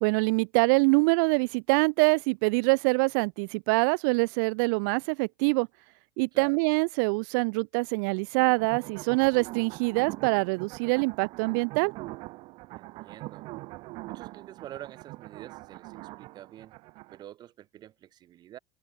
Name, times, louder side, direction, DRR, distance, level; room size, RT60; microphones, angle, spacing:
voice 1, 0.0-5.7 6.2-11.9, right 33 dB, 80° right, 0.5 m, -25 dB
sound 1, 8.4-17.2, right 22 dB, 65° right, 3.5 m, -43 dB
voice 2, 12.7-13.5 14.0-16.8 17.1-18.6, right 12 dB, 45° right, 3.6 m, -47 dB
cardioid pair, 135°, 10 cm